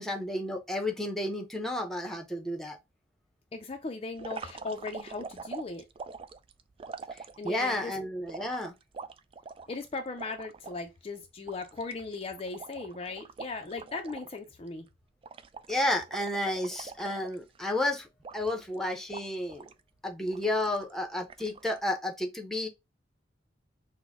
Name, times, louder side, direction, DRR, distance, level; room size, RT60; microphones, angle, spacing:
voice 1, 0.0-2.8 7.4-8.7 15.7-18.1 18.3-19.7 20.0-22.7, left 1 dB, ahead, 0.8 m, -31 dB
voice 2, 3.5-5.8 7.4-7.9 9.7-14.9, left 3 dB, 30° left, 0.4 m, -38 dB
sound 1, 4.2-7.8 8.3-10.8 11.2-11.3 11.5-14.4 14.7-14.9 15.2-17.7 18.2-18.7 19.1-19.8 20.3-20.9 21.3-21.8, right 5 dB, 30° right, 0.3 m, -44 dB
6.0 x 2.2 x 3.5 m
head